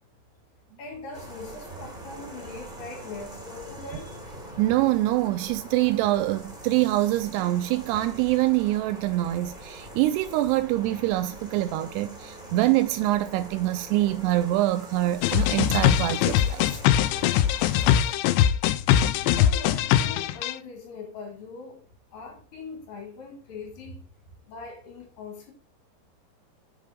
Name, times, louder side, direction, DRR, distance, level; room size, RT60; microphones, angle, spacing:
voice 1, 0.8-4.3 19.2-21.8 22.1-24.1 24.5-25.5, left 3 dB, 55° left, 3.9 m, -41 dB
sound 1, 1.1-18.1, right 1 dB, 45° right, 0.5 m, -43 dB
voice 2, 4.6-16.8, right 16 dB, 85° right, 2.5 m, -25 dB
sound 2, 15.2-20.5, left 11 dB, 85° left, 2.8 m, -22 dB
8.2 x 4.9 x 5.2 m
omnidirectional pair, 5.0 m